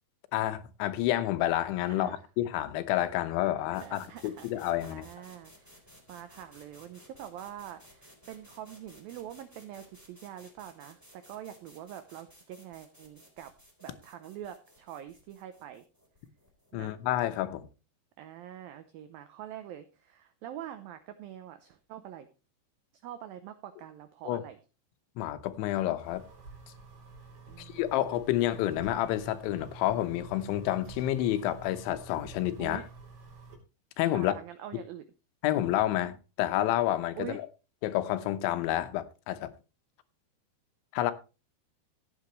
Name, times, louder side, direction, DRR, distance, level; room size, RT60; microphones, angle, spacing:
voice 1, 0.3-5.1 16.7-17.7 24.3-24.4 25.2-26.2 27.6-32.8 34.0-34.3 35.4-37.3 37.8-39.5 40.9-41.1, left 13 dB, 90° left, 3.3 m, -29 dB
voice 2, 1.9-2.2 3.8-5.7 6.1-13.5 13.8-15.9 16.7-17.0 18.2-22.3 23.0-24.6 27.5-28.0 32.6-32.8 34.1-35.0 37.2-37.4, right 11 dB, 85° right, 2.0 m, -45 dB
sound 1, 3.7-17.4, equal, 5° right, 3.0 m, -58 dB
sound 2, 26.0-33.6, right 4 dB, 50° right, 4.2 m, -49 dB
15.5 x 8.7 x 3.1 m
omnidirectional pair, 5.2 m